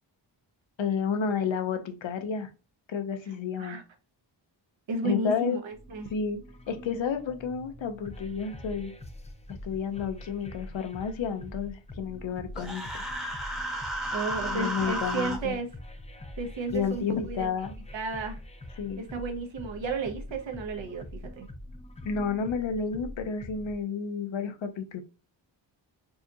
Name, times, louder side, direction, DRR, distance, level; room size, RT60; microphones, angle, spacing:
voice 1, 0.8-2.5 2.9-3.8 5.0-5.6 6.1-6.4 6.7-8.9 9.6-12.9 14.4-15.6 16.7-17.7 18.8-19.0 22.0-25.0, left 6 dB, 80° left, 7 dB, 0.7 m, -31 dB
voice 2, 4.9-6.1 14.1-15.7 16.4-17.5 17.9-18.4 19.0-21.1 21.4-21.5, right 3 dB, 75° right, 4 dB, 0.9 m, -33 dB
sound 1, 5.7-23.7, left 1 dB, 15° left, 0.3 m, -44 dB
Human voice, 12.6-15.4, right 1 dB, ahead, 0.9 m, -33 dB
4.2 x 2.4 x 2.7 m, 0.31 s
wide cardioid pair, 115°, 46 cm